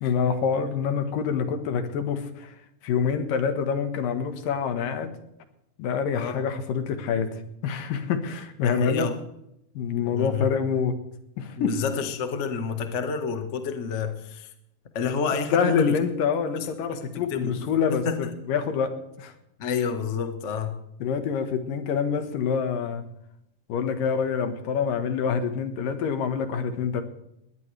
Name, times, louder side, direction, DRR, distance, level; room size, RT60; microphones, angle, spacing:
voice 1, 0.0-2.5 2.8-5.1 5.8-9.1 9.8-11.0 11.4-11.8 15.5-19.3 21.0-23.0 23.7-27.0, left 6 dB, 90° left, 8 dB, 3.1 m, -26 dB
voice 2, 8.6-9.1 10.1-10.5 11.6-14.5 14.9-15.9 16.9-17.0 17.3-17.6 17.9-18.2 19.6-20.7, left 6 dB, 45° left, 6 dB, 0.9 m, -29 dB
21.0 x 18.0 x 3.4 m, 0.80 s
omnidirectional pair, 3.8 m